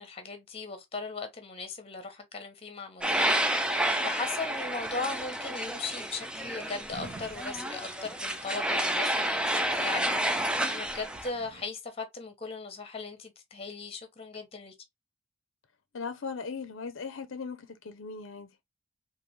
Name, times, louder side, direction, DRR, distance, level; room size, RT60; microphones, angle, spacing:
voice 1, 0.0-14.7, left 4 dB, 30° left, 0.9 m, -38 dB
sound 1, 3.0-11.3, right 1 dB, 5° right, 0.4 m, -30 dB
Drawer open or close, 6.4-9.2 9.7-9.8 9.9-11.7, right 2 dB, 45° right, 0.9 m, -49 dB
voice 2, 15.9-18.5, left 5 dB, 65° left, 0.6 m, -38 dB
3.9 x 2.6 x 3.0 m
head